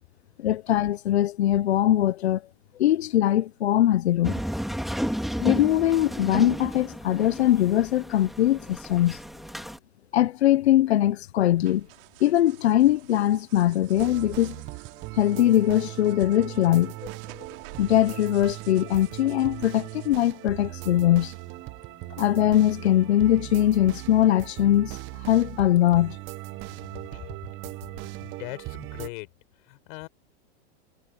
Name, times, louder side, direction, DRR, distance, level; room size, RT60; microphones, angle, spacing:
voice 1, 0.4-2.4 2.8-4.3 5.4-9.2 10.1-11.9 12.2-14.6 15.2-16.9 17.3-17.4 17.8-21.3 22.2-25.0 25.3-26.2, left 12 dB, 80° left, 1.1 m, -21 dB
sound 1, 4.2-9.8, equal, ahead, 2.7 m, -32 dB
sound 2, 11.6-20.2, right 25 dB, 55° right, 4.1 m, -51 dB
sound 3, 14.0-29.1, right 21 dB, 40° right, 1.2 m, -39 dB
voice 2, 26.9-27.4 28.2-29.3 29.6-30.1, left 28 dB, 55° left, 5.4 m, -40 dB
hypercardioid pair, 130°, 32 cm